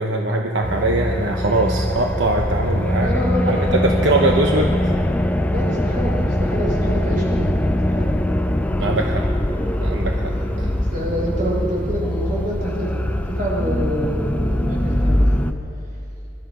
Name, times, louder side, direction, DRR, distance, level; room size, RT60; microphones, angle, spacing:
voice 1, 0.0-3.1 3.5-4.9 8.8-9.3 9.8-10.3 10.6-10.7, right 2 dB, 80° right, 1 dB, 1.0 m, -21 dB
sound 1, 0.6-15.5, left 1 dB, 10° left, 0.5 m, -22 dB
sound 2, 1.9-15.3, left 1 dB, 85° left, 1.0 m, -35 dB
voice 2, 2.9-4.0 5.5-7.5 7.9-8.1 10.2-15.4, equal, 50° right, -3 dB, 4.6 m, -27 dB
22.0 x 13.0 x 5.1 m, 2.8 s
head